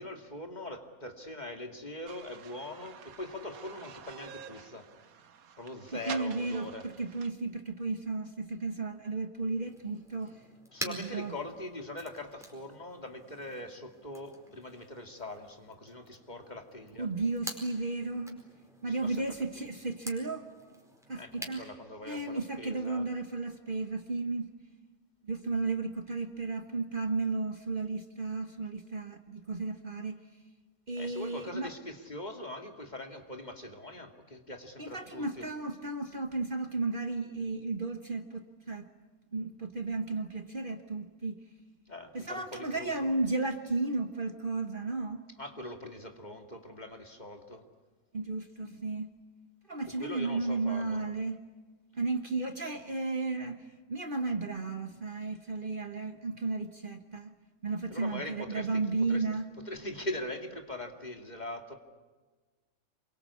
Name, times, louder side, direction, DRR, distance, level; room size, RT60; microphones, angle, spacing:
voice 1, 0.0-4.9 5.6-6.9 10.7-17.1 19.0-19.2 21.2-23.1 31.0-35.5 41.9-42.9 45.4-47.7 50.0-51.0 57.9-58.7 59.1-59.2 59.7-61.7, left 1 dB, 30° left, 4 dB, 2.5 m, -42 dB
sound 1, 2.1-7.3, right 7 dB, 85° right, 1.6 m, -48 dB
voice 2, 5.9-10.4 10.8-11.3 17.0-18.4 18.8-20.4 21.1-21.7 22.0-24.5 25.2-30.2 30.9-31.7 34.8-38.9 39.3-41.4 42.1-45.2 48.1-49.1 49.7-51.4 51.9-57.3 57.6-59.5, right 3 dB, 40° right, 7 dB, 1.4 m, -34 dB
sound 2, 9.6-21.7, equal, ahead, 4.6 m, -47 dB
28.0 x 23.0 x 8.5 m, 1.3 s
omnidirectional pair, 1.5 m